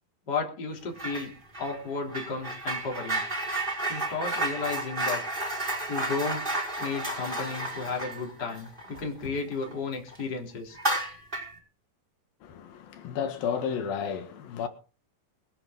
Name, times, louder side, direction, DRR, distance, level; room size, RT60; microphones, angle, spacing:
voice 1, 0.3-1.3 1.6-3.2 3.9-5.2 5.9-6.5 6.8-10.8, left 4 dB, 30° left, 3.7 m, -33 dB
sound 1, 1.0-1.3 1.5-9.7 10.1-10.2 10.7-11.6, right 2 dB, 15° right, 5.4 m, -32 dB
voice 2, 12.4-14.7, left 7 dB, 85° left, 3.6 m, -32 dB
23.5 x 10.5 x 3.9 m
omnidirectional pair, 4.0 m